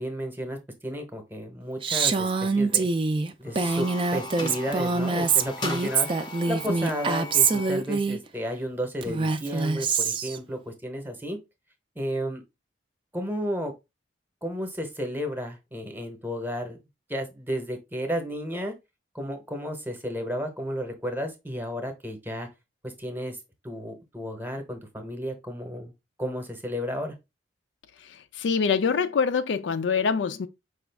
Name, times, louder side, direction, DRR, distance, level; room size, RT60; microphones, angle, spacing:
voice 1, 0.0-2.9 3.4-11.4 12.0-12.4 13.1-13.7 14.4-16.8 17.1-18.7 19.1-22.5 22.8-23.4 23.6-25.9 26.2-27.1, equal, 10° right, 0.8 m, -33 dB
Female speech woman speaking, 1.8-8.2 9.0-10.4, right 4 dB, 30° right, 0.3 m, -25 dB
sound 1, 3.5-7.9, left 2 dB, 25° left, 0.5 m, -38 dB
voice 2, 28.0-30.5, left 5 dB, 75° left, 0.4 m, -25 dB
4.9 x 2.3 x 3.3 m
head